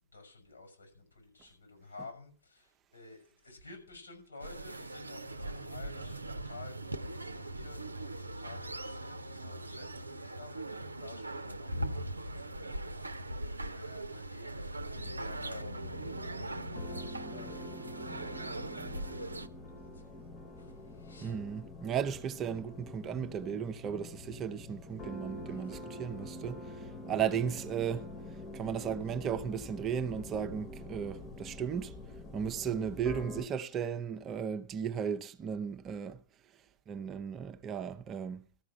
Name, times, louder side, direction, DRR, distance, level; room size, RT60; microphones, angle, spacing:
voice 1, 0.1-13.2 13.7-16.4 16.7-21.4 25.5-25.7, left 3 dB, 80° left, 5.9 m, -53 dB
sound 1, 4.4-19.5, right 1 dB, 80° right, 0.5 m, -40 dB
sound 2, 15.0-33.5, left 1 dB, 25° left, 1.3 m, -46 dB
voice 2, 21.2-28.1 28.5-31.9 32.3-36.2 36.9-38.5, right 8 dB, 30° right, 0.6 m, -35 dB
13.5 x 5.8 x 7.8 m
figure-of-eight pair, 90°, 0 cm